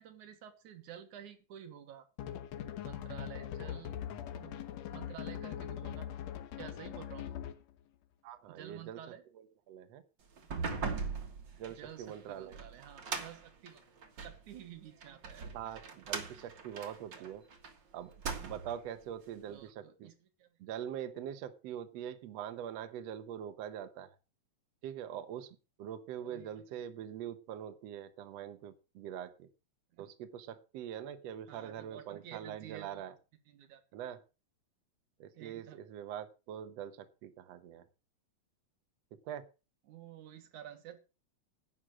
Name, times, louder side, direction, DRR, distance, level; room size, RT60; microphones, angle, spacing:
voice 1, 0.0-2.1 2.8-4.0 4.3-6.1 6.6-7.4 8.5-9.2 11.8-13.8 14.2-15.5 15.8-15.9 16.3-16.4 17.1-17.3 19.5-20.1 20.4-20.5 26.2-26.6 29.9-30.1 31.5-33.1 33.5-33.8 35.3-35.8 39.9-41.0, right 10 dB, 80° right, 8 dB, 2.9 m, -51 dB
sound 1, 2.2-7.7, left 10 dB, 70° left, 2.1 m, -41 dB
voice 2, 8.2-9.0 9.4-10.0 11.6-12.6 13.1-13.2 15.5-17.4 17.9-18.1 18.4-20.1 20.6-24.1 24.8-29.5 30.0-33.1 33.9-34.2 35.2-37.8 39.3-39.4, right 10 dB, 65° right, 10 dB, 2.0 m, -43 dB
sound 2, 10.4-14.4 15.0-17.7 18.1-18.8, right 5 dB, 45° right, 2.1 m, -40 dB
11.0 x 9.1 x 5.9 m, 0.32 s
omnidirectional pair, 3.4 m